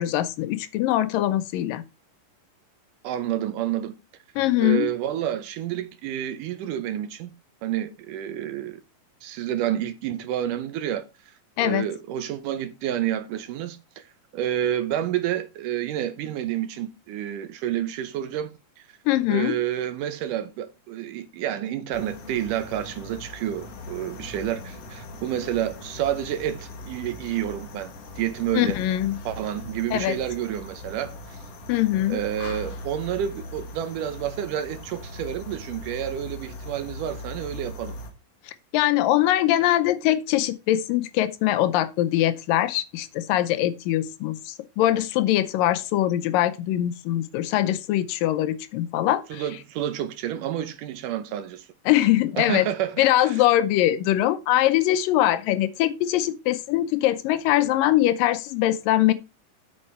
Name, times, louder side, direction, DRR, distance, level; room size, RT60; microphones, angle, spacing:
voice 1, 0.0-1.8 4.4-4.9 11.6-11.9 19.1-19.6 28.5-29.2 29.9-30.2 31.7-32.2 38.5-49.4 51.9-52.7 53.0-59.1, left 13 dB, 80° left, 2.3 m, -22 dB
voice 2, 3.0-3.9 4.6-7.3 7.6-8.8 9.2-11.1 11.6-14.0 14.3-18.5 19.3-27.9 28.2-28.8 29.3-31.4 32.1-38.0 49.3-51.7 52.4-53.4, right 11 dB, 75° right, 2.2 m, -29 dB
sound 1, 21.9-38.1, left 1 dB, 55° left, 2.2 m, -40 dB
8.8 x 6.6 x 4.3 m
omnidirectional pair, 4.1 m